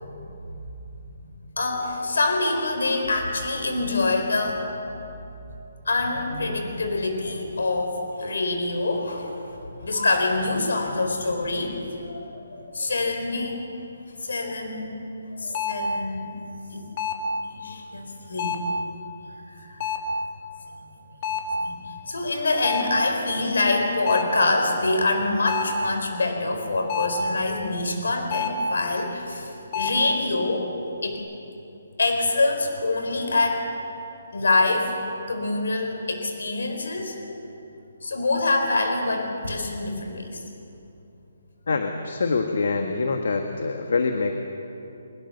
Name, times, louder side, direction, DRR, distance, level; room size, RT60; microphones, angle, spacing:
voice 1, 1.6-4.9 5.8-13.6 14.2-14.9 15.3-16.3 16.7-16.8 17.5-18.6 19.5-19.8 21.5-30.7 31.0-31.2 32.0-33.7 34.3-34.9 35.3-37.2 38.0-40.4, left 2 dB, 80° left, 4 dB, 4.6 m, -25 dB
sound 1, 14.4-14.5 15.5-15.9 17.0-17.3 18.4-18.8 19.8-20.2 21.2-21.6 22.6-23.0 24.1-24.4 25.5-25.8 26.9-27.3 28.3-28.7 29.7-30.1, left 4 dB, 25° left, 2.0 m, -28 dB
voice 2, 41.7-44.4, left 4 dB, 60° left, 5 dB, 1.6 m, -25 dB
24.0 x 22.0 x 6.8 m, 2.8 s
hypercardioid pair, 180°, 0 cm